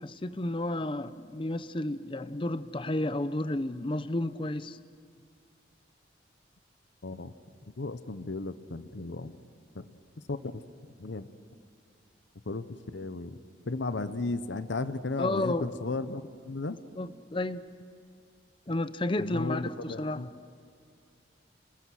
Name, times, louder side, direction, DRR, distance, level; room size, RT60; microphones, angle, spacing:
voice 1, 0.0-4.8 15.2-15.7 17.0-17.6 18.7-20.2, left 1 dB, 30° left, 14 dB, 0.6 m, -32 dB
voice 2, 7.0-7.3 7.8-9.4 9.7-9.8 10.3-10.6 11.0-11.3 12.5-12.6 12.9-13.4 13.7-16.8 19.2-20.3, left 3 dB, 80° left, 12 dB, 0.8 m, -34 dB
29.0 x 20.5 x 6.3 m, 2.3 s
head